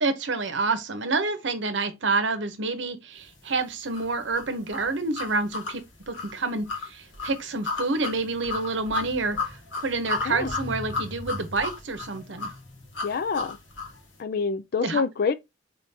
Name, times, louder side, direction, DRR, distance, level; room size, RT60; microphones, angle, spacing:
voice 1, 0.0-9.4 9.8-12.5 14.8-15.0, right 3 dB, 70° right, 0.9 m, -28 dB
sound 1, 3.9-14.0, left 3 dB, 75° left, 1.4 m, -34 dB
voice 2, 13.0-13.6 14.2-15.3, left 5 dB, 55° left, 0.4 m, -26 dB
3.8 x 3.7 x 2.7 m
head